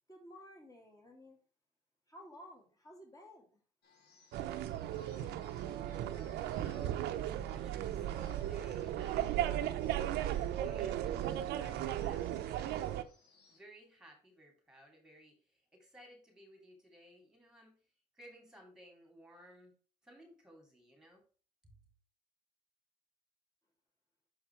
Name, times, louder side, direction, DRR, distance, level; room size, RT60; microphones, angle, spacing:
voice 1, 0.1-1.4 2.1-3.6, left 1 dB, 20° left, 1 dB, 2.6 m, -54 dB
sound 1, 3.8-13.6, left 2 dB, 70° left, 2.2 m, -64 dB
sound 2, 4.3-13.0, right 12 dB, 80° right, 0.6 m, -36 dB
voice 2, 6.1-9.7 10.0-13.1 13.5-17.8 18.1-19.7 20.0-21.2 21.6-21.7, equal, 5° right, 2 dB, 2.6 m, -58 dB
6.4 x 4.7 x 4.4 m, 0.38 s
cardioid pair, 110°, 17 cm